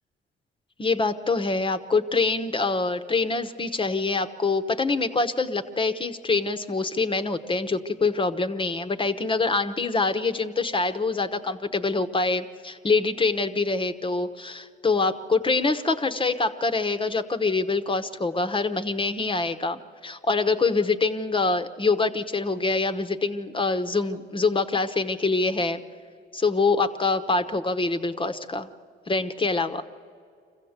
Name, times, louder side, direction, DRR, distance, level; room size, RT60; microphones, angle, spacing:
voice 1, 0.8-25.8 26.3-28.7 29.1-29.8, left 3 dB, 25° left, 9 dB, 1.0 m, -25 dB
24.5 x 15.5 x 8.1 m, 2.3 s
cardioid pair, 90°, 20 cm